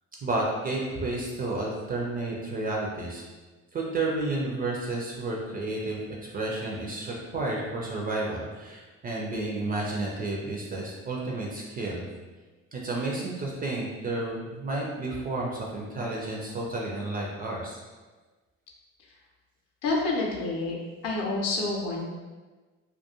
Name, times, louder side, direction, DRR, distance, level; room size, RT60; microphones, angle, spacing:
voice 1, 0.2-3.2 3.7-6.0 6.3-12.1 12.7-17.8, right 2 dB, 25° right, -2 dB, 0.4 m, -31 dB
voice 2, 19.8-20.8 21.0-22.0, left 3 dB, 60° left, -1 dB, 0.6 m, -28 dB
2.3 x 2.3 x 2.7 m, 1.3 s
figure-of-eight pair, 45°, 39 cm